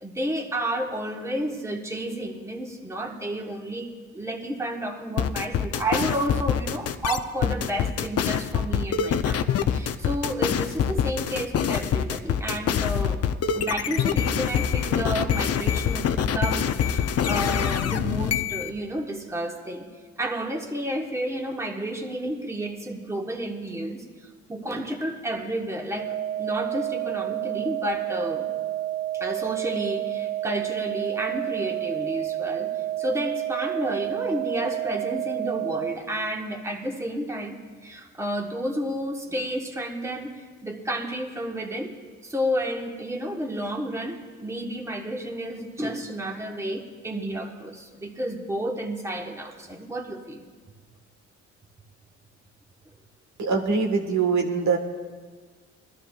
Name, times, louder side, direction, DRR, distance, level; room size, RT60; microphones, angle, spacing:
voice 1, 0.0-13.2 13.5-19.9 20.2-24.0 24.5-28.5 29.1-32.7 33.0-40.3 40.6-42.0 42.2-50.4, right 1 dB, 10° right, 1 dB, 1.2 m, -31 dB
sound 1, 5.2-18.7, left 8 dB, 55° left, 0.6 m, -25 dB
sound 2, 26.0-36.0, right 13 dB, 40° right, 0.8 m, -30 dB
voice 2, 53.4-54.8, right 5 dB, 65° right, 3 dB, 1.5 m, -23 dB
21.5 x 12.5 x 2.4 m, 1.5 s
cardioid pair, 90°, 30 cm